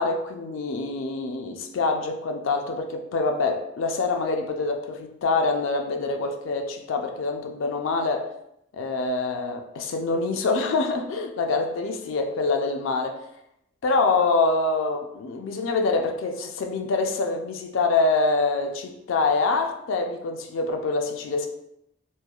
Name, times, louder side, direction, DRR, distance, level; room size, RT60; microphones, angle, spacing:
voice 1, 0.0-8.3 8.7-13.3 13.8-21.5, left 3 dB, 75° left, 4 dB, 0.4 m, -25 dB
3.1 x 2.3 x 2.3 m, 0.79 s
head